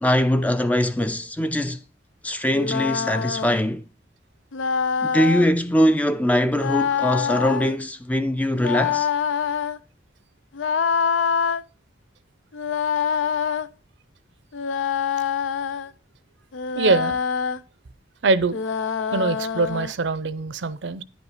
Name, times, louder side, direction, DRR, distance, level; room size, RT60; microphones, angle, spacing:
voice 1, 0.0-1.8 2.2-3.8 5.0-9.1, equal, 10° left, 0.4 m, -22 dB
sound 1, 2.5-3.6 4.5-5.5 6.5-7.8 8.5-9.8 10.5-11.6 12.5-13.7 14.5-15.9 16.5-17.6 18.5-19.9, left 6 dB, 90° left, 0.5 m, -25 dB
voice 2, 16.8-17.2 18.2-18.6 19.1-21.0, right 3 dB, 75° right, 0.6 m, -23 dB
10.0 x 5.2 x 4.9 m
head